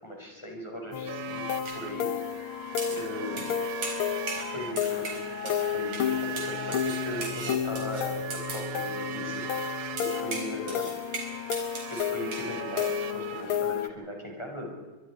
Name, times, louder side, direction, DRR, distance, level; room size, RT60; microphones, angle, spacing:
voice 1, 0.0-1.5 1.7-2.5 2.9-3.5 4.3-10.9 11.9-14.7, equal, 10° left, 0 dB, 5.8 m, -38 dB
sound 1, 0.9-13.9, left 9 dB, 85° left, 1.1 m, -32 dB
sound 2, 1.1-13.6, right 11 dB, 90° right, 2.7 m, -40 dB
sound 3, 1.6-1.8 2.8-3.0 3.4-3.6 3.8-4.5 4.8-5.7 5.9-6.1 6.4-8.7 10.0-12.5 12.8-12.9, right 3 dB, 50° right, 5.5 m, -38 dB
25.0 x 23.5 x 5.0 m, 1.3 s
omnidirectional pair, 3.7 m